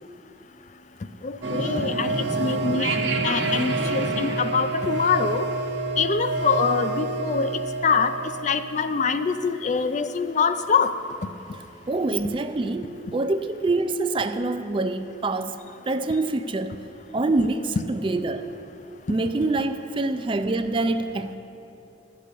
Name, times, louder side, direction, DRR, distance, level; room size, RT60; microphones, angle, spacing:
voice 1, 1.2-3.0 3.2-5.5 6.0-7.5 7.8-8.1 8.4-10.9, left 5 dB, 40° left, 10 dB, 0.4 m, -24 dB
sound 1, 1.4-9.4, right 3 dB, 75° right, 1.1 m, -28 dB
voice 2, 11.5-16.8 17.1-18.5 19.1-21.4, right 2 dB, 30° right, 9 dB, 0.4 m, -26 dB
12.0 x 6.0 x 8.2 m, 2.9 s
head